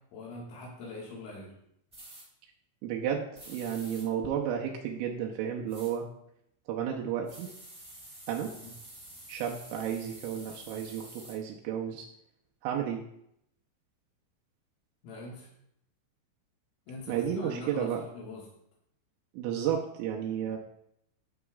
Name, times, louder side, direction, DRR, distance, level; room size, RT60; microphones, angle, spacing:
voice 1, 0.1-1.5 8.6-8.7 15.0-15.5 16.9-18.4, left 2 dB, 75° left, -4 dB, 4.1 m, -43 dB
sound 1, 1.9-2.2 3.3-4.1 5.7-5.9 7.2-11.4, right 1 dB, 15° right, 1.0 m, -49 dB
voice 2, 2.8-6.0 6.7-7.5 8.3-8.5 9.3-12.1 12.6-13.0 17.1-18.1 19.3-20.6, right 9 dB, 85° right, -1 dB, 3.3 m, -32 dB
14.0 x 6.0 x 2.4 m, 0.74 s
omnidirectional pair, 5.9 m